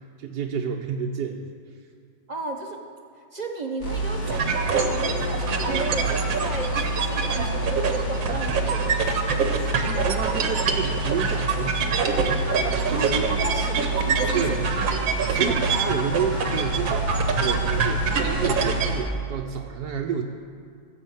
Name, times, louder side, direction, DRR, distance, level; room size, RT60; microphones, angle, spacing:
voice 1, 0.0-1.5 9.6-12.2 12.7-13.4 14.3-14.6 15.0-20.2, right 7 dB, 70° right, 1 dB, 1.2 m, -30 dB
voice 2, 2.3-2.8 3.3-10.4 12.9-14.6, right 2 dB, 45° right, 3 dB, 0.5 m, -34 dB
sound 1, 3.8-19.0, right 1 dB, 75° left, 3.6 m, -28 dB
sound 2, 4.3-18.9, right 5 dB, 90° right, 1.8 m, -26 dB
15.5 x 7.0 x 7.3 m, 2.2 s
omnidirectional pair, 2.0 m